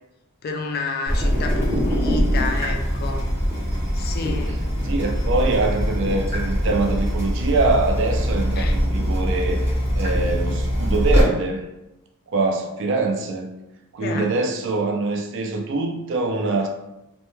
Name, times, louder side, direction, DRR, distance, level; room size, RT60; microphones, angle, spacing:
voice 1, 0.4-3.2 3.9-4.6 8.6-8.8 14.0-14.3, left 4 dB, 45° left, 3 dB, 0.3 m, -30 dB
Water tap faucet / Drip, 1.1-11.2, equal, 10° right, 0.6 m, -22 dB
voice 2, 4.5-9.7 10.0-11.6 12.3-13.5 13.9-16.7, right 3 dB, 55° right, 3 dB, 0.3 m, -24 dB
2.1 x 2.1 x 2.9 m, 0.94 s
head